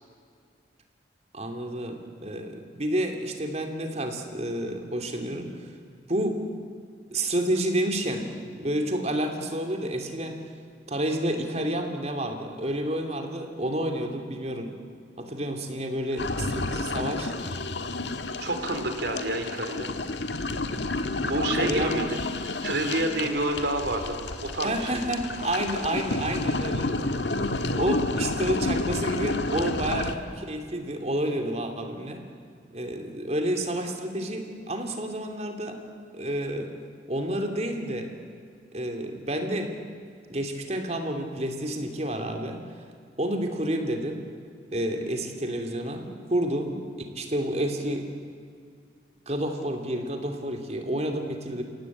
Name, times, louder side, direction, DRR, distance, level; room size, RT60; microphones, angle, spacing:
voice 1, 1.3-5.7 6.1-6.4 7.1-8.3 8.5-10.4 10.9-14.7 15.2-17.3 21.2-22.0 23.2-23.3 24.6-26.9 27.6-32.2 32.7-35.8 36.1-36.7 37.1-38.1 38.7-39.7 40.3-42.6 43.2-44.2 44.7-46.8 47.1-48.1 49.3-51.6, right 1 dB, 35° right, 4 dB, 2.8 m, -30 dB
sound 1, 16.2-30.1, left 2 dB, 75° left, 1.5 m, -30 dB
voice 2, 18.4-19.9 21.3-24.2 24.5-25.0, right 1 dB, 70° right, 6 dB, 3.2 m, -29 dB
30.0 x 17.5 x 8.6 m, 2.2 s
head